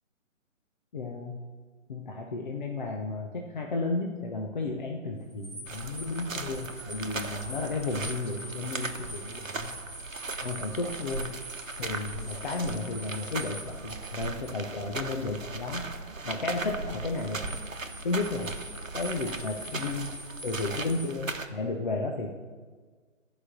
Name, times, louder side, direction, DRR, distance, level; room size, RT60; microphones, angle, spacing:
voice 1, 0.9-1.4 1.9-9.7 10.4-11.3 11.8-15.8 16.2-17.5 18.0-18.5 18.9-20.1 20.4-22.3, left 3 dB, 35° left, 1 dB, 0.8 m, -33 dB
sound 1, 5.2-14.6 17.1-21.1, right 1 dB, 5° right, 0.5 m, -45 dB
sound 2, 5.7-21.5, right 3 dB, 75° right, 1.0 m, -38 dB
Musical instrument, 12.1-19.0, right 1 dB, 25° right, 0.9 m, -48 dB
12.0 x 5.1 x 6.0 m, 1.5 s
figure-of-eight pair, 140°, 40 cm